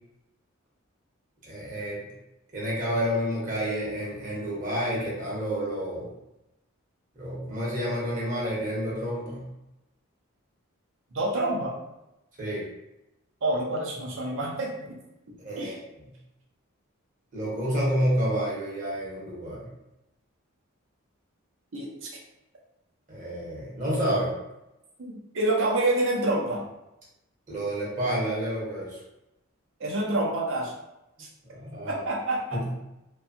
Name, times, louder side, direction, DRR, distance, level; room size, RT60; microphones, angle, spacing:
voice 1, 1.4-2.0 2.5-6.1 7.2-9.4 12.4-12.6 15.4-15.7 17.3-19.6 23.1-24.3 27.5-29.0 31.4-32.0 32.5-32.6, equal, 40° right, -5 dB, 0.9 m, -29 dB
voice 2, 11.1-11.7 13.4-15.0 15.6-15.8 21.7-22.2 25.0-26.6 29.8-30.7 31.2-31.3 31.9-32.6, right 2 dB, 65° right, -2 dB, 0.6 m, -27 dB
2.7 x 2.3 x 2.6 m, 0.92 s
head